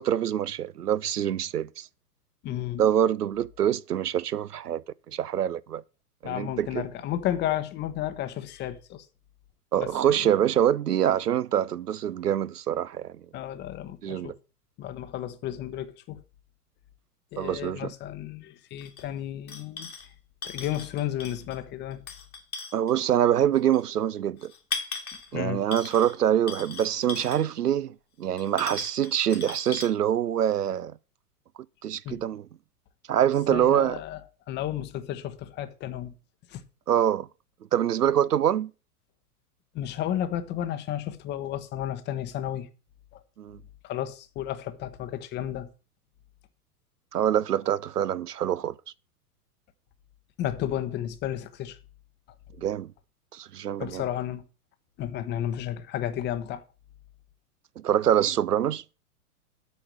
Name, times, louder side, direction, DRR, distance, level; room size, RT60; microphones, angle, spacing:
voice 1, 0.0-1.9 2.8-4.8 5.1-5.8 6.2-6.8 9.7-13.1 14.0-14.4 17.4-17.9 22.7-24.5 25.3-30.9 31.8-32.5 33.1-34.0 36.9-37.3 37.7-38.7 43.4-43.6 47.1-48.7 52.6-52.9 53.3-54.0 57.8-58.8, right 10 dB, 85° right, 0.5 m, -25 dB
voice 2, 2.4-2.8 6.2-9.1 9.8-9.9 13.3-14.3 14.8-16.2 17.3-19.9 20.4-22.0 25.3-25.6 32.0-32.2 33.5-34.2 34.5-36.1 36.5-36.6 39.7-42.7 43.8-45.7 50.4-51.8 53.8-54.4 55.0-56.6, left 11 dB, 25° left, 0.9 m, -32 dB
sound 1, 18.8-19.0 19.5-20.1 20.4-21.6 21.9-23.0 23.7-23.8 24.4-25.3 25.7-26.2 26.5-27.5 28.4-29.9, left 4 dB, 70° left, 2.0 m, -38 dB
8.4 x 4.9 x 7.5 m
figure-of-eight pair, 100°, 46 cm